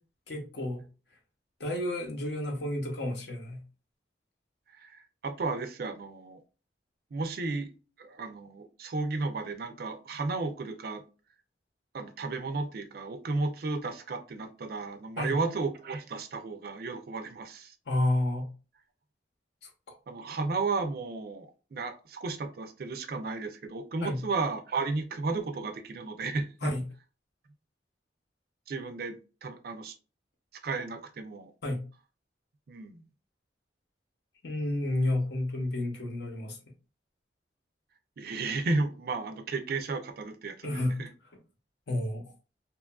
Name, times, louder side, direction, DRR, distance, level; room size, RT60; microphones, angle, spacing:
voice 1, 0.3-0.8 1.6-3.6 15.2-15.4 17.9-18.5 24.0-24.2 26.6-26.8 31.6-31.8 34.4-36.6 40.6-41.0 41.9-42.2, left 1 dB, 65° left, 0.7 m, -30 dB
voice 2, 4.8-6.4 7.1-7.7 8.0-11.0 11.9-17.7 20.1-26.7 28.7-29.2 29.4-29.9 30.6-31.5 32.7-33.0 38.2-41.1, right 3 dB, 55° right, 0.4 m, -33 dB
2.9 x 2.3 x 2.2 m
head